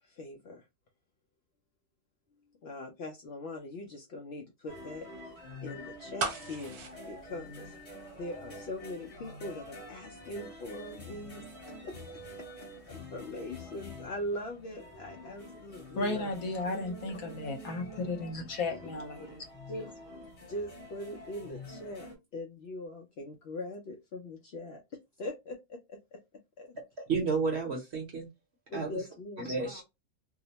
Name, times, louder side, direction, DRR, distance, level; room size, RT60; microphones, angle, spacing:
voice 1, 0.0-0.7 2.6-5.1 5.6-11.5 11.8-12.2 12.6-16.3 18.7-18.9 19.7-20.0 20.4-24.8 25.2-26.0 26.6-26.8 28.7-29.6, left 1 dB, 85° left, 0.5 m, -41 dB
sound 1, 4.7-22.2, left 1 dB, 30° left, 0.7 m, -47 dB
sound 2, 6.2-8.2 8.5-8.6, right 4 dB, 70° right, 1.3 m, -37 dB
voice 2, 15.9-19.5, left 3 dB, 65° left, 1.2 m, -34 dB
voice 3, 27.1-28.3 28.7-29.0 29.4-29.8, right 4 dB, 55° right, 0.8 m, -31 dB
2.8 x 2.0 x 2.7 m
omnidirectional pair, 1.7 m